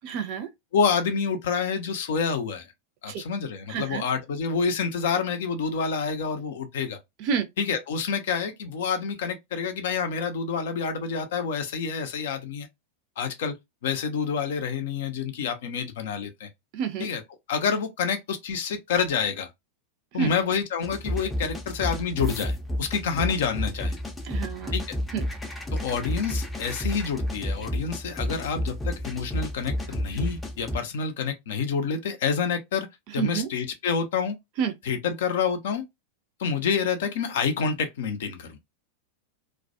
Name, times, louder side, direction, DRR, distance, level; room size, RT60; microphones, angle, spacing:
voice 1, 0.0-0.5 3.1-3.2 3.7-4.1 7.2-7.5 16.7-17.1 20.2-20.3 24.2-24.7 25.1-25.2 33.2-33.5 34.6-34.7, right 7 dB, 45° right, 0.5 m, -28 dB
voice 2, 0.7-2.7 3.0-7.0 7.6-12.7 13.2-13.5 13.8-16.5 17.0-17.2 17.5-19.5 20.1-24.0 24.7-25.0 25.7-32.9 33.1-34.4 34.8-35.8 36.4-38.6, left 6 dB, 55° left, 0.6 m, -28 dB
sound 1, 20.8-30.8, left 1 dB, 10° left, 0.6 m, -31 dB
2.2 x 2.1 x 2.7 m
figure-of-eight pair, 90°, 0 cm